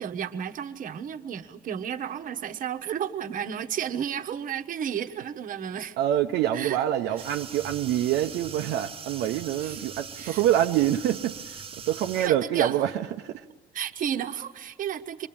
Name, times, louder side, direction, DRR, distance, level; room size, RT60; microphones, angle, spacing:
voice 1, 0.0-6.0 6.5-6.8 9.6-9.8 10.2-10.4 12.2-12.7 13.7-15.3, right 9 dB, 55° right, 1.2 m, -32 dB
voice 2, 6.0-13.5, right 12 dB, 85° right, 0.8 m, -26 dB
sound 1, 7.2-12.3, right 6 dB, 35° right, 0.9 m, -41 dB
27.5 x 22.0 x 8.8 m
cardioid pair, 110°, 17 cm